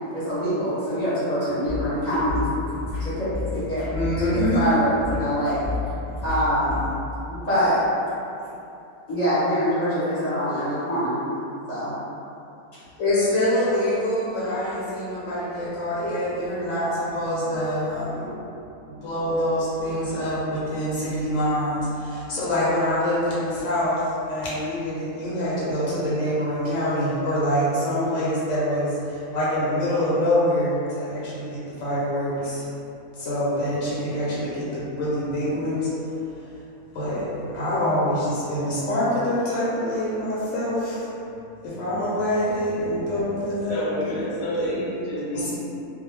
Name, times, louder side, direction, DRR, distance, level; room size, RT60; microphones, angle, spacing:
voice 1, 0.1-2.4 3.0-3.8 4.2-5.6 6.2-6.8 7.3-7.8 9.1-11.1 11.7-11.9, equal, 35° left, -13 dB, 0.8 m, -24 dB
sound 1, 1.7-6.8, left 3 dB, 10° right, 0.7 m, -31 dB
voice 2, 3.9-4.8 13.0-18.4 18.9-32.6 33.2-35.9 36.4-36.5 36.9-41.1 41.6-44.2 44.6-44.8 45.3-45.4, equal, 65° left, -8 dB, 0.8 m, -25 dB
voice 3, 43.7-45.6, equal, 85° left, -5 dB, 1.1 m, -29 dB
2.4 x 2.1 x 3.1 m, 2.7 s
omnidirectional pair, 1.6 m